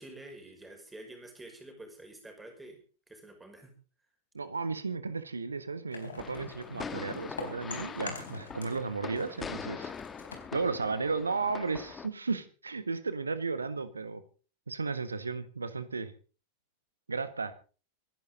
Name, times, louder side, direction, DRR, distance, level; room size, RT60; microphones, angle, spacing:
voice 1, 0.0-2.8 3.1-3.7, right 1 dB, 10° right, 4 dB, 5.8 m, -48 dB
voice 2, 4.3-9.9 10.5-14.2 14.7-16.1 17.1-17.5, right 4 dB, 75° right, 13 dB, 1.5 m, -34 dB
sound 1, 5.9-8.9 9.1-11.5, left 5 dB, 70° left, 3.9 m, -44 dB
sound 2, 6.2-12.1, left 6 dB, 20° left, 1.7 m, -42 dB
25.5 x 11.0 x 4.0 m, 0.37 s
figure-of-eight pair, 90°, 0 cm